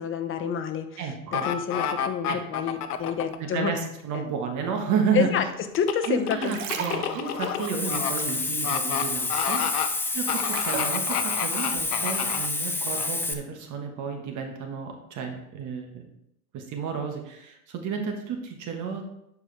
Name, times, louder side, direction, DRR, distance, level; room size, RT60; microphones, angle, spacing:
voice 1, 0.0-1.0 1.4-3.7 4.1-4.3 5.1-5.4 5.7-6.8, left 7 dB, 30° left, 7 dB, 0.9 m, -28 dB
voice 2, 1.0-1.5 2.3-2.4 3.4-5.4 6.0-16.0 16.5-19.0, right 6 dB, 40° right, 3 dB, 1.3 m, -31 dB
sound 1, 1.3-3.4 5.7-8.1 8.6-9.0 9.3-9.9 10.3-12.5 13.0-13.1, left 9 dB, 90° left, 0.8 m, -29 dB
sound 2, 6.2-9.3 9.5-11.0 11.6-11.7, right 7 dB, 65° right, 1.2 m, -37 dB
Hiss, 7.6-13.3, left 3 dB, 5° left, 0.4 m, -29 dB
11.0 x 4.9 x 3.3 m, 0.82 s
hypercardioid pair, 100°, 44 cm